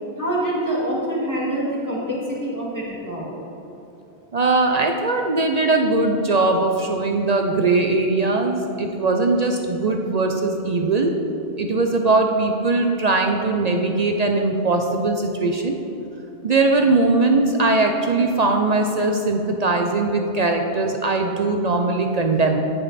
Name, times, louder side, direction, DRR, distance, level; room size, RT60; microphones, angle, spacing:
voice 1, 0.2-3.3, right 1 dB, 15° right, -7 dB, 2.3 m, -25 dB
voice 2, 4.3-11.1 11.6-15.8 16.4-22.6, right 3 dB, 45° right, 3 dB, 0.6 m, -20 dB
14.5 x 5.1 x 4.2 m, 2.9 s
omnidirectional pair, 1.1 m